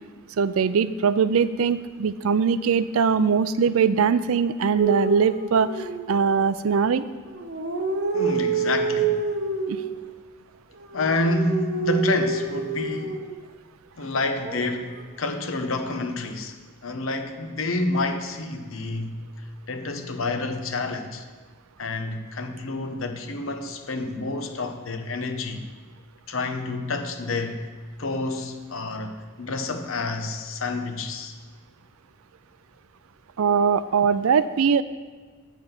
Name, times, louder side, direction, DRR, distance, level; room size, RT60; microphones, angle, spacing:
voice 1, 0.4-5.7 6.1-7.0 9.7-9.8 33.4-34.8, right 6 dB, 75° right, 0.4 m, -21 dB
sound 1, 4.8-6.4 7.2-9.9 10.8-13.3 14.4-15.0, right 4 dB, 55° right, 0.9 m, -27 dB
voice 2, 8.1-9.2 10.9-13.3 14.0-16.6 16.8-19.2 19.7-21.2 21.8-25.6 26.3-27.6 28.0-31.3, left 2 dB, 70° left, 0.9 m, -28 dB
8.3 x 5.9 x 6.7 m
head